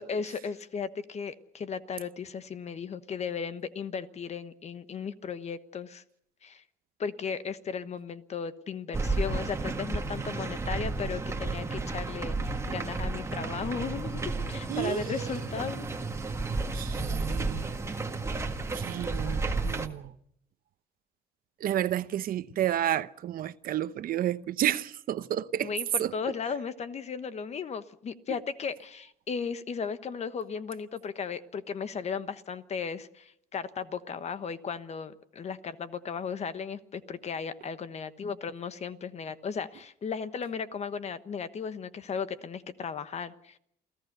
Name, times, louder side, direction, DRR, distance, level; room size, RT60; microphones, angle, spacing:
voice 1, 0.0-6.0 6.4-6.6 7.0-14.2 14.5-16.0 25.6-43.6, left 6 dB, 40° left, 1.2 m, -36 dB
sound 1, 8.9-19.9, right 3 dB, 15° right, 1.7 m, -32 dB
voice 2, 14.7-15.4 16.7-17.7 18.7-20.2 21.6-25.7 26.0-26.1, right 11 dB, 60° right, 0.8 m, -31 dB
28.5 x 15.5 x 6.7 m
cardioid pair, 110°, 17 cm